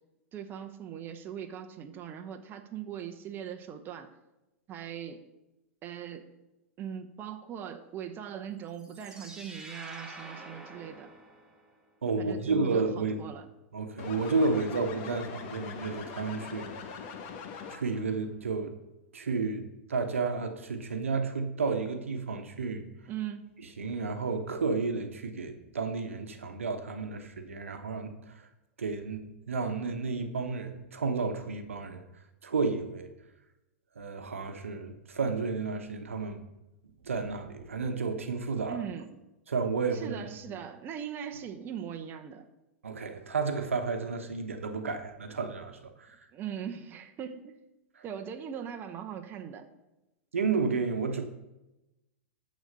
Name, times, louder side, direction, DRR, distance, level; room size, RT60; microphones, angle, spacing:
voice 1, 0.3-4.1 4.7-5.2 5.8-6.4 6.8-11.1 12.2-13.5 23.1-23.6 38.7-39.2 39.9-42.4 46.3-47.6 48.0-49.7, right 9 dB, 30° right, 0.9 m, -40 dB
sound 1, 8.7-11.8, right 2 dB, 10° right, 1.5 m, -47 dB
voice 2, 12.0-13.2 13.7-16.9 17.7-18.7 19.1-22.8 23.8-28.4 28.8-32.0 32.4-33.1 34.0-36.4 37.0-38.8 39.5-40.3 42.8-46.2 48.0-48.1 50.3-51.3, right 4 dB, 85° right, 1.0 m, -32 dB
sound 2, 14.0-18.1, left 6 dB, 50° left, 1.3 m, -42 dB
12.0 x 4.2 x 6.7 m
hypercardioid pair, 105°, 7 cm